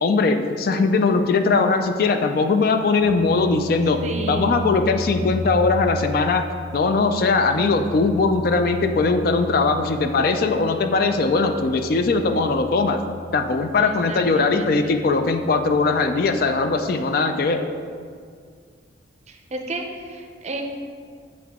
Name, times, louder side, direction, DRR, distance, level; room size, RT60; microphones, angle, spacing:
voice 1, 0.0-4.0 4.3-6.4 6.7-13.0 13.3-17.7, left 3 dB, 50° left, 7 dB, 0.3 m, -20 dB
sound 1, 3.0-17.0, left 1 dB, ahead, 0.8 m, -35 dB
voice 2, 4.0-4.6 13.8-15.0 19.3-20.6, right 2 dB, 35° right, 3 dB, 0.5 m, -32 dB
7.7 x 3.6 x 3.5 m, 2.1 s
head